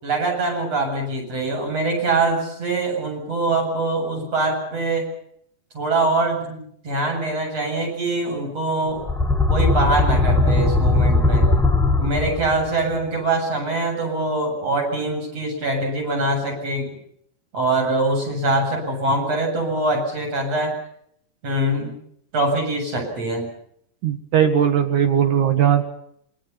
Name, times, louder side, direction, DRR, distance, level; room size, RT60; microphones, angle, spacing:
voice 1, 0.0-5.1 5.7-9.0 9.5-11.4 12.0-17.0 17.5-20.7 21.4-22.0 22.3-23.5, right 2 dB, 50° right, 1 dB, 8.9 m, -23 dB
sound 1, 8.9-12.7, left 2 dB, ahead, 1.0 m, -19 dB
voice 2, 24.0-25.9, right 9 dB, 70° right, 6 dB, 3.1 m, -18 dB
28.0 x 24.0 x 5.8 m, 0.69 s
omnidirectional pair, 3.7 m